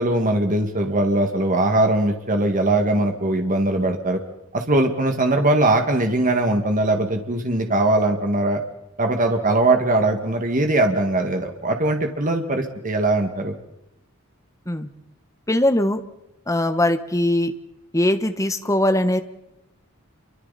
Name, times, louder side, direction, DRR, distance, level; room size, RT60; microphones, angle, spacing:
voice 1, 0.0-4.2 4.5-8.6 9.0-13.5, right 2 dB, 40° right, 4 dB, 2.1 m, -20 dB
voice 2, 15.5-16.0 16.5-17.5 17.9-19.2, left 1 dB, 15° left, 8 dB, 1.3 m, -20 dB
28.5 x 24.5 x 4.3 m, 0.89 s
head